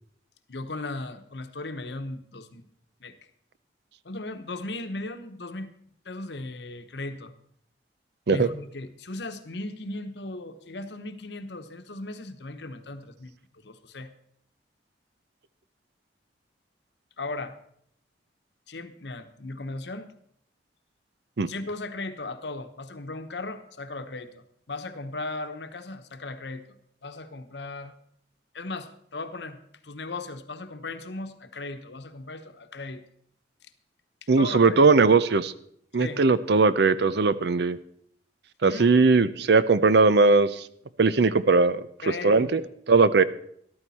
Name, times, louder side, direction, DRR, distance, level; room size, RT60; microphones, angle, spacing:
voice 1, 0.5-2.7 3.0-3.2 4.0-5.7 6.0-7.3 8.3-14.1 17.2-17.6 18.7-20.1 21.5-26.8 27.0-27.9 28.5-29.6 29.8-33.0 34.2-34.8 36.0-36.2 38.6-38.9 42.0-42.7, left 2 dB, 70° left, 9 dB, 1.0 m, -37 dB
voice 2, 34.3-35.5 35.9-37.8 38.6-40.5 41.0-41.8 42.2-42.6 42.9-43.2, right 4 dB, 65° right, 15 dB, 0.6 m, -19 dB
13.5 x 12.5 x 4.2 m, 0.67 s
head